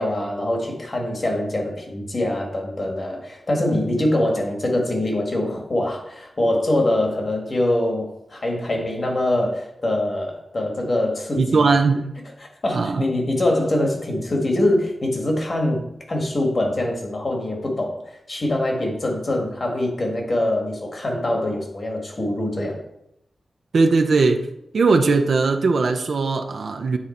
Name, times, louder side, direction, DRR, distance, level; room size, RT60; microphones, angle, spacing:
voice 1, 0.0-11.7 12.4-15.8 16.1-22.8, left 1 dB, 35° left, 1 dB, 1.5 m, -24 dB
voice 2, 11.4-12.0 12.7-13.0 23.7-24.5 24.7-27.0, right 4 dB, 60° right, 5 dB, 0.6 m, -19 dB
8.8 x 3.9 x 4.3 m, 0.79 s
wide cardioid pair, 160°, 0 cm